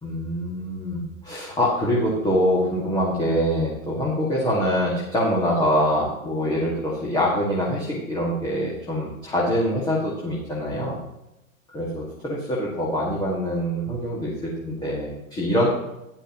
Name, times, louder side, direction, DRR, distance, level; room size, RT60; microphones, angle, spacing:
voice 1, 0.0-10.9 11.7-14.3 14.6-15.7, equal, 10° left, -6 dB, 2.0 m, -24 dB
13.0 x 10.5 x 3.0 m, 0.92 s
hypercardioid pair, 155°, 42 cm